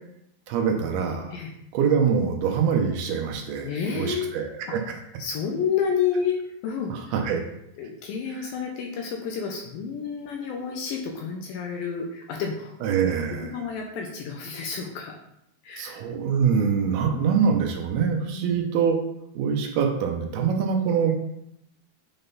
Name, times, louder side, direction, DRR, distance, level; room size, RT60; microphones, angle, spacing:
voice 1, 0.5-1.4 1.7-4.8 6.9-7.4 12.8-13.6 15.8-19.0 19.4-21.1, right 6 dB, 75° right, 3 dB, 2.6 m, -24 dB
voice 2, 3.6-4.3 4.7-4.8 5.2-6.9 7.8-15.2 15.6-16.1 18.3-18.6, left 6 dB, 75° left, 1 dB, 2.3 m, -30 dB
8.9 x 3.7 x 4.0 m, 0.78 s
omnidirectional pair, 4.7 m